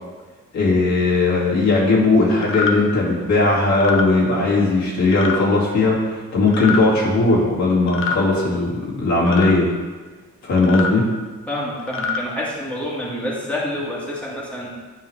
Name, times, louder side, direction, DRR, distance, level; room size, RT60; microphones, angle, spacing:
voice 1, 0.5-9.7 10.4-11.0, left 3 dB, 65° left, -5 dB, 2.3 m, -18 dB
sound 1, 2.4-2.7 3.7-4.0 5.1-5.4 6.5-6.8 7.9-8.2 9.3-9.5 10.6-10.9 11.8-12.2, left 5 dB, 45° left, 1.0 m, -25 dB
voice 2, 11.5-14.7, left 1 dB, 5° left, -6 dB, 2.0 m, -27 dB
9.7 x 4.7 x 3.3 m, 1.4 s
cardioid pair, 90°, 30 cm